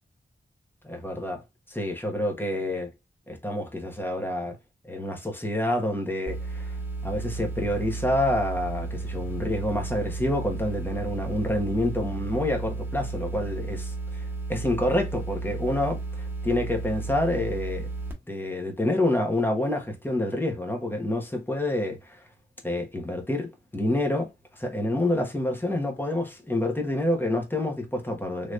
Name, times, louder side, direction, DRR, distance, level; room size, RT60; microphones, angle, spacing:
voice 1, 0.8-1.4 1.7-2.9 3.3-4.6 4.9-6.7 7.0-17.9 18.3-22.2 22.6-24.3 24.6-28.5, left 1 dB, 10° left, 1.0 m, -28 dB
sound 1, 6.3-18.1, right 3 dB, 10° right, 1.2 m, -33 dB
3.3 x 2.9 x 2.5 m
wide cardioid pair, 105°, 20 cm